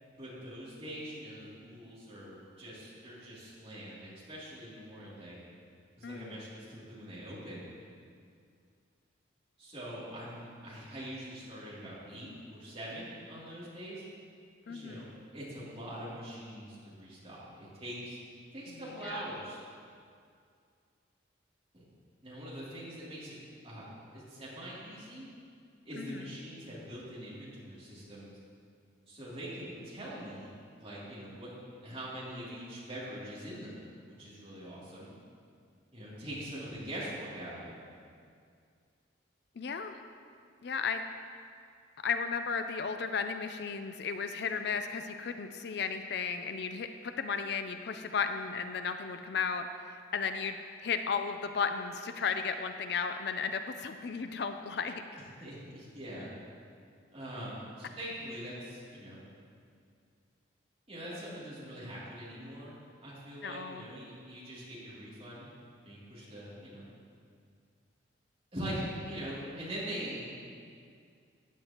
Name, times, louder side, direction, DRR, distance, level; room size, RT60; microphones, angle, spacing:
voice 1, 0.1-5.4 6.0-7.7 9.6-14.0 14.7-15.1 15.3-18.2 18.5-19.6 21.7-21.9 22.2-23.4 23.6-23.9 24.1-25.3 25.8-28.3 29.1-31.5 31.8-33.8 34.2-35.1 35.9-37.7 55.1-56.3 57.1-59.2 60.9-65.5 65.8-66.9 68.5-70.3, equal, 30° right, -9 dB, 2.8 m, -43 dB
voice 2, 6.0-6.4 14.7-15.0 18.7-18.8 19.0-19.2 26.0-26.3 39.6-40.0 40.6-41.0 42.0-55.0 63.4-63.8, left 5 dB, 55° left, 8 dB, 0.4 m, -34 dB
14.5 x 8.9 x 2.9 m, 2.3 s
head